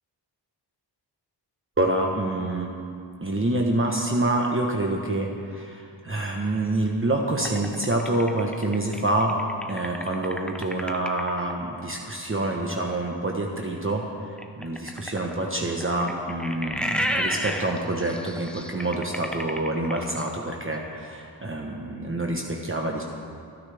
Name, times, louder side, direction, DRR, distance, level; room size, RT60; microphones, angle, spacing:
voice 1, 1.8-2.7 3.2-9.3 9.7-23.0, right 2 dB, 30° right, 0 dB, 1.2 m, -27 dB
sound 1, 7.4-11.5 14.4-20.4, equal, ahead, 0.7 m, -32 dB
28.5 x 10.0 x 3.5 m, 2.5 s
wide cardioid pair, 100°, 44 cm